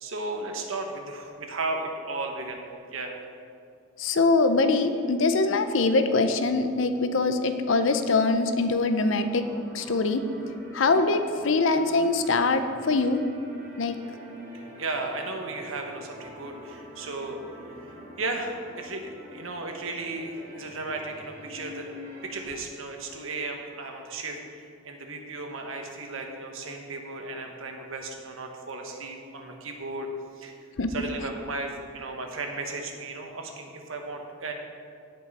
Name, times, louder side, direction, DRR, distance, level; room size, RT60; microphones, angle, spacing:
voice 1, 0.0-2.6 2.9-3.1 14.5-17.4 17.8-21.9 22.2-30.1 30.4-30.6 30.9-34.5, right 3 dB, 85° right, 3 dB, 1.3 m, -35 dB
voice 2, 4.0-9.5 9.7-10.3 10.7-13.2 13.8-14.0 30.8-30.9, left 3 dB, 70° left, 9 dB, 0.6 m, -23 dB
sound 1, 8.7-22.4, equal, 15° right, 2.4 m, -46 dB
16.5 x 5.5 x 4.2 m, 2.3 s
head